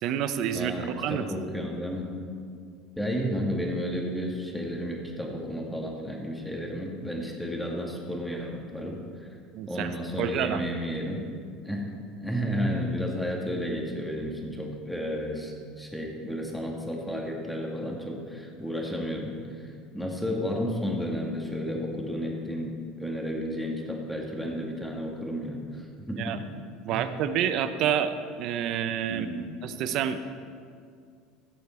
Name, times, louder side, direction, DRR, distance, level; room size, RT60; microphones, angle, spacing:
voice 1, 0.0-1.3 9.5-10.6 26.2-26.4 26.8-29.3 29.6-30.2, right 9 dB, 60° right, 11 dB, 0.7 m, -28 dB
voice 2, 0.5-2.1 3.0-9.0 9.7-11.2 11.6-11.9 12.2-19.3 19.9-22.7 23.0-25.6 26.1-26.3 26.9-27.1 29.1-29.5, equal, ahead, -1 dB, 2.1 m, -32 dB
16.5 x 6.9 x 4.4 m, 2.2 s
supercardioid pair, 95°, 0 cm